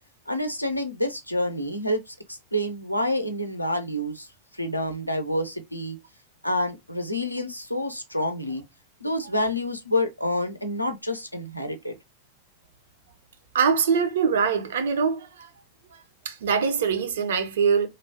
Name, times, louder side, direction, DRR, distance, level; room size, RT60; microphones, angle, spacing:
voice 1, 0.3-4.3 4.5-6.0 6.4-8.6 9.0-12.0, left 1 dB, 90° left, 0.4 m, -28 dB
voice 2, 13.5-15.5 16.3-17.9, right 6 dB, 60° right, 0.4 m, -23 dB
2.8 x 2.1 x 2.7 m
figure-of-eight pair, 90°, 0 cm